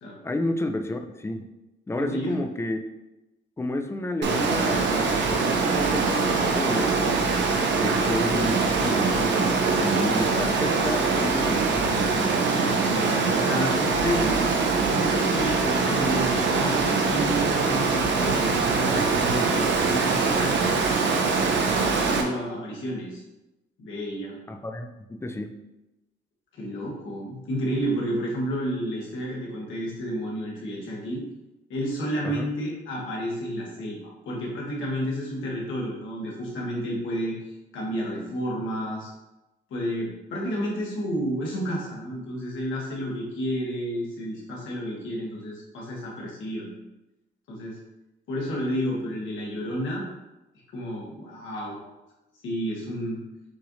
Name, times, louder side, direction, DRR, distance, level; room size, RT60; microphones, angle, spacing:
voice 1, 0.2-1.5 1.9-2.9 3.6-7.2 7.8-12.5 24.5-25.6 32.2-32.5, left 1 dB, 15° left, 5 dB, 0.5 m, -31 dB
voice 2, 2.0-2.3 12.4-14.3 14.9-20.8 22.1-23.2 23.8-24.4 26.5-31.2 31.7-37.4 37.7-39.1 39.7-46.7 47.5-47.8 48.3-50.0 50.7-51.8 52.4-53.2, equal, 75° left, -3 dB, 1.6 m, -31 dB
Water, 4.2-22.2, right 4 dB, 65° right, 0.8 m, -23 dB
6.3 x 2.6 x 3.1 m, 1.0 s
cardioid pair, 90°, 20 cm